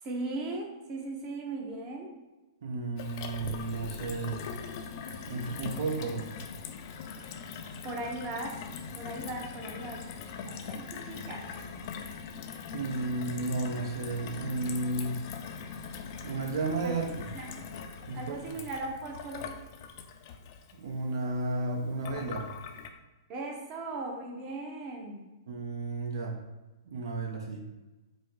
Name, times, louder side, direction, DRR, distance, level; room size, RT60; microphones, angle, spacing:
voice 1, 0.0-2.1 7.8-8.6 9.0-10.1 10.4-11.5 16.8-16.9 17.3-17.6 18.1-19.5 23.3-25.2, right 2 dB, 35° right, 1 dB, 0.8 m, -38 dB
voice 2, 2.6-4.4 5.3-6.3 12.7-15.1 16.2-17.3 18.1-18.4 20.7-22.5 25.5-26.3 26.8-27.6, right 3 dB, 65° right, 0 dB, 0.7 m, -33 dB
Gurgling / Water tap faucet / Sink (filling or washing), 3.0-22.9, left 6 dB, 50° left, 0.4 m, -42 dB
5.1 x 2.0 x 3.6 m, 1.1 s
hypercardioid pair, 115°, 2 cm